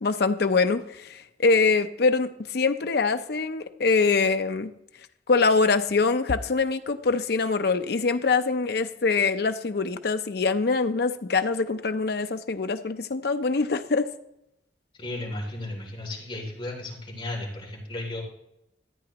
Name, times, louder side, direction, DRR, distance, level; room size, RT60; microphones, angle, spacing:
voice 1, 0.0-4.7 5.3-14.1, left 4 dB, 60° left, 9 dB, 0.6 m, -24 dB
voice 2, 15.0-18.2, left 1 dB, 30° left, -3 dB, 3.1 m, -34 dB
14.0 x 8.8 x 3.0 m, 0.83 s
head